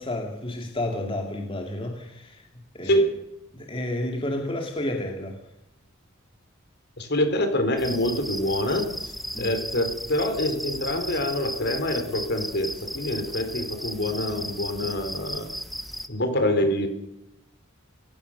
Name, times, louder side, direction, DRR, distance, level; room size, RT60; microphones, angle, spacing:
voice 1, 0.0-3.1 3.5-5.4 9.3-9.5, left 1 dB, 25° left, 2 dB, 2.4 m, -31 dB
voice 2, 7.0-9.1 9.4-15.5 16.1-16.9, left 1 dB, 50° left, 7 dB, 4.1 m, -26 dB
sound 1, 7.8-16.1, equal, ahead, 1.1 m, -35 dB
28.0 x 16.5 x 6.6 m, 0.84 s
head